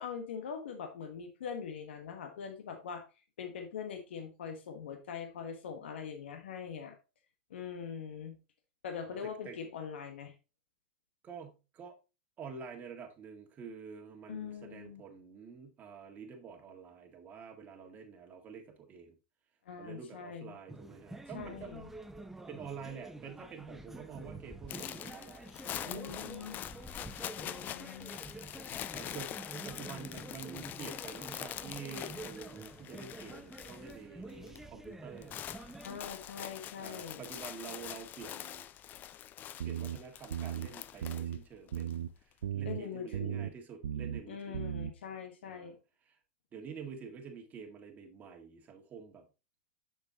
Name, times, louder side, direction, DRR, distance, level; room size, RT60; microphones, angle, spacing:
voice 1, 0.0-3.0 3.4-7.0 7.5-8.4 8.8-10.3 14.3-15.0 19.6-20.6 21.3-21.9 25.8-26.6 27.3-28.2 35.8-37.3 42.6-43.5 44.3-45.7, left 7 dB, 80° left, 1.3 m, -42 dB
voice 2, 9.0-9.6 11.2-11.9 12.4-19.2 19.8-21.7 22.5-26.7 28.9-29.4 29.6-35.4 36.8-38.7 39.7-42.1 42.5-44.6 45.5-45.8 46.1-46.2 46.5-49.3, right 6 dB, 30° right, 1.7 m, -48 dB
sound 1, 20.7-36.0, right 2 dB, 5° right, 0.7 m, -48 dB
sound 2, 24.7-34.0 34.2-34.6 34.9-41.9, left 11 dB, 30° left, 0.4 m, -44 dB
sound 3, 39.6-40.0 40.3-40.7 41.0-41.4 41.7-42.1 42.4-42.8 43.1-43.5 43.8-44.2 44.5-44.9, right 10 dB, 85° right, 0.5 m, -36 dB
6.7 x 6.3 x 2.9 m
hypercardioid pair, 115°, 6 cm